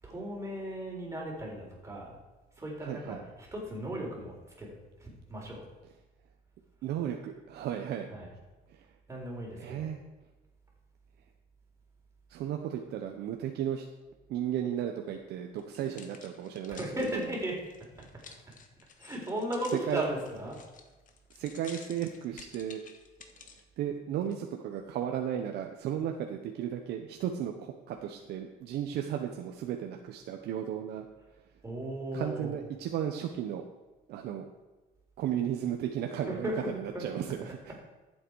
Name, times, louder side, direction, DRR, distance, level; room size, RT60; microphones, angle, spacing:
voice 1, 0.0-2.2 2.6-5.6 8.1-8.3 9.1-9.9 16.7-17.7 19.0-20.6 31.6-32.6 36.2-37.1 37.4-37.8, equal, 15° right, -2 dB, 4.2 m, -36 dB
voice 2, 2.8-3.2 6.8-8.1 8.7-8.8 9.6-10.0 12.3-13.8 14.3-17.3 18.3-18.4 19.9-20.0 21.3-22.8 23.8-31.1 32.1-33.6 34.1-34.4 35.2-37.6, right 10 dB, 75° right, 3 dB, 1.0 m, -34 dB
sound 1, 15.6-23.6 24.2-24.3, left 6 dB, 50° left, 1.5 m, -52 dB
13.5 x 8.0 x 4.8 m, 1.2 s
cardioid pair, 110°, 17 cm